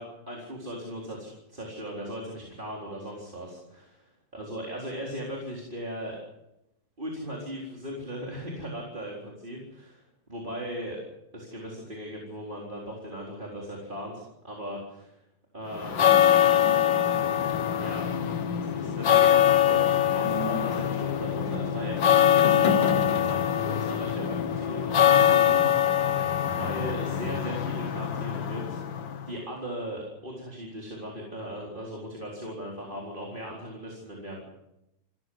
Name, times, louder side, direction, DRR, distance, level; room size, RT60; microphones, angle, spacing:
voice 1, 0.3-6.2 7.0-10.0 10.3-11.0 11.3-15.2 15.5-16.3 17.8-18.1 18.6-28.8 29.3-34.5, equal, 25° right, -2 dB, 4.3 m, -38 dB
sound 1, 15.7-29.3, left 10 dB, 80° left, 2.2 m, -23 dB
28.5 x 15.0 x 7.9 m, 0.89 s
omnidirectional pair, 2.0 m